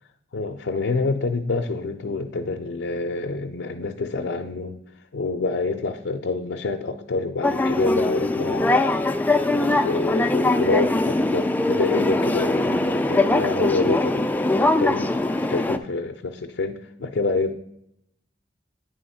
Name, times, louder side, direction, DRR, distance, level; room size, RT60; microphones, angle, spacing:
voice 1, 0.3-4.8 5.1-8.9 9.5-14.3 14.8-15.2 15.5-17.6, left 3 dB, 75° left, 4 dB, 0.5 m, -27 dB
sound 1, 7.4-15.8, left 2 dB, 10° left, 0.3 m, -22 dB
9.2 x 3.5 x 5.5 m, 0.80 s
head